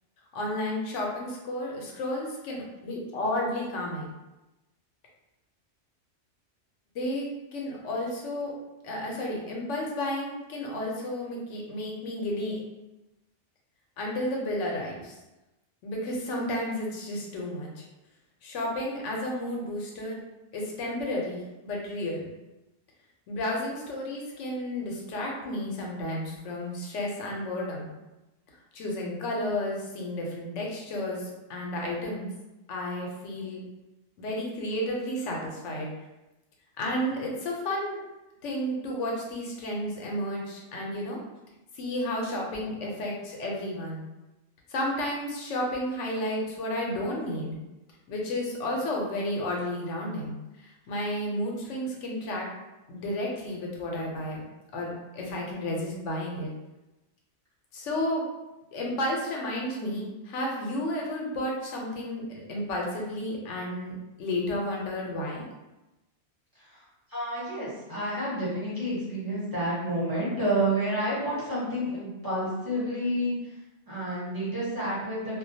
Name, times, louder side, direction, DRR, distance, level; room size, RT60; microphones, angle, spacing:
voice 1, 0.3-4.1 6.9-8.5 8.8-12.6 14.0-15.2 15.8-17.8 18.4-20.2 20.5-22.3 23.3-27.9 28.7-32.3 32.7-33.6 34.2-35.9 36.8-38.0 38.4-41.2 41.7-44.0 44.7-47.6 48.1-52.5 52.9-54.4 54.7-56.5 57.7-58.2 58.7-62.2 62.5-65.4, left 1 dB, 90° left, -1 dB, 1.0 m, -32 dB
voice 2, 67.1-73.3 73.9-75.4, right 1 dB, 20° right, -10 dB, 0.8 m, -29 dB
2.3 x 2.2 x 2.6 m, 1.0 s
omnidirectional pair, 1.2 m